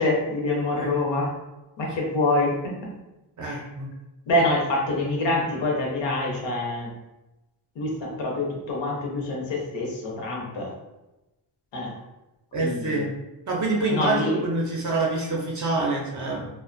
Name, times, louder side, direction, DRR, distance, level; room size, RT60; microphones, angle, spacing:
voice 1, 0.0-1.4 1.8-2.8 3.4-3.6 4.3-6.9 7.7-10.7 11.7-11.9 12.6-13.0 13.9-14.5, left 2 dB, 65° left, -2 dB, 0.8 m, -26 dB
voice 2, 3.4-3.9 12.5-13.1 13.5-16.5, right 3 dB, 40° right, -3 dB, 0.5 m, -26 dB
2.5 x 2.1 x 2.5 m, 0.99 s
wide cardioid pair, 170°, 48 cm